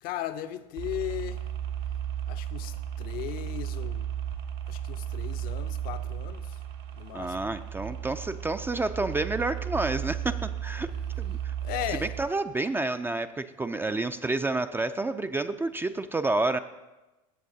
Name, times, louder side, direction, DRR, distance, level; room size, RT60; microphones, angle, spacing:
voice 1, 0.0-1.5 2.3-4.1 4.7-6.6 7.0-7.4 9.8-9.9 10.3-10.6 11.6-12.2, left 12 dB, 55° left, 0.6 m, -37 dB
sound 1, 0.8-12.2, right 10 dB, 60° right, 1.0 m, -34 dB
voice 2, 7.1-10.9 11.2-11.5 12.2-16.6, right 2 dB, 10° right, 0.3 m, -29 dB
16.0 x 7.4 x 2.7 m
hypercardioid pair, 90°, 18 cm